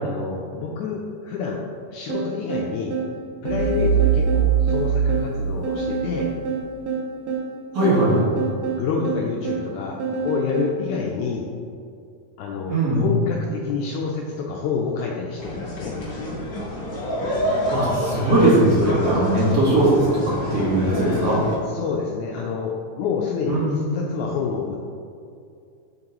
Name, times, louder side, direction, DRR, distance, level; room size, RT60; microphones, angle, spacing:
voice 1, 0.0-1.6 1.9-3.0 3.4-6.3 8.1-11.5 12.4-16.0 21.7-24.8, left 5 dB, 80° left, -1 dB, 1.8 m, -28 dB
sound 1, 2.1-10.8, right 5 dB, 85° right, 1.3 m, -28 dB
sound 2, 3.5-6.3, right 7 dB, 45° left, 1.2 m, -21 dB
voice 2, 7.7-8.2 12.7-13.1 17.7-21.4 23.5-23.8, right 1 dB, 55° right, -8 dB, 2.4 m, -19 dB
sound 3, 15.4-21.6, equal, 60° left, 0.9 m, -28 dB
7.7 x 5.2 x 2.9 m, 2.5 s
omnidirectional pair, 3.9 m